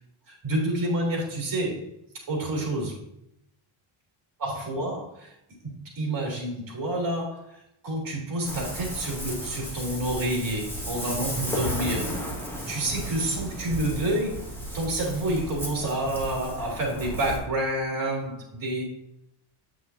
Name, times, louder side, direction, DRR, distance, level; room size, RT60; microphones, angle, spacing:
voice 1, 0.3-1.8 2.1-3.0 4.4-5.3 5.6-7.6 7.8-12.1 12.7-14.5 14.7-18.8, right 1 dB, 40° right, -1 dB, 3.0 m, -29 dB
Ocean, 8.4-17.4, equal, 5° left, 1.7 m, -34 dB
8.1 x 6.4 x 2.8 m, 0.76 s
cardioid pair, 145°, 50 cm